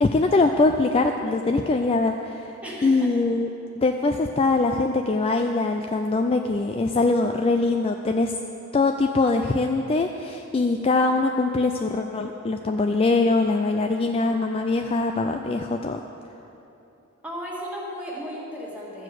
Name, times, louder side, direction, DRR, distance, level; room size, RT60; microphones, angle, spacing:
voice 1, 0.0-2.5 2.8-3.5 3.8-8.3 8.7-16.0, left 3 dB, 25° left, 4 dB, 0.3 m, -22 dB
voice 2, 2.6-3.1 17.2-19.0, equal, 5° right, -5 dB, 1.8 m, -35 dB
13.0 x 4.8 x 7.7 m, 2.9 s
head